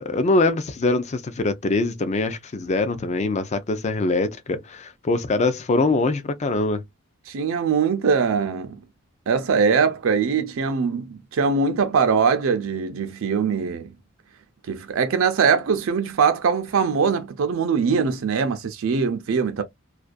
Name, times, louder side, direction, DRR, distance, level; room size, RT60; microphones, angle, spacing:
voice 1, 0.0-6.8, left 2 dB, 35° left, 0.4 m, -23 dB
voice 2, 7.3-8.8 9.3-13.9 14.7-19.6, right 5 dB, 70° right, 0.4 m, -22 dB
2.4 x 2.2 x 2.4 m
head